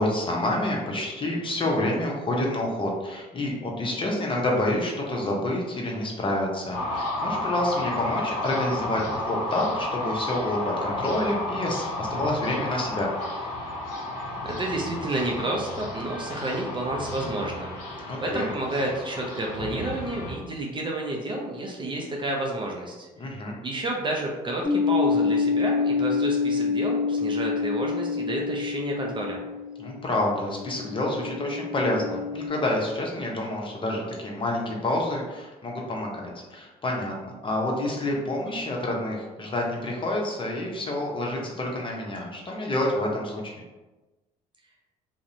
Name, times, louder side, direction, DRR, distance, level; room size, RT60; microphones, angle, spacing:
voice 1, 0.0-13.1 18.1-18.5 23.2-23.6 29.8-43.6, left 1 dB, 25° left, -1 dB, 0.6 m, -28 dB
sound 1, 6.7-20.4, left 1 dB, 75° left, 0.6 m, -32 dB
voice 2, 14.4-23.1 23.6-29.4, right 1 dB, 25° right, -1 dB, 0.5 m, -30 dB
sound 2, 24.6-32.5, left 5 dB, 10° right, 1.3 m, -27 dB
2.5 x 2.0 x 2.7 m, 1.1 s
hypercardioid pair, 55°, 19 cm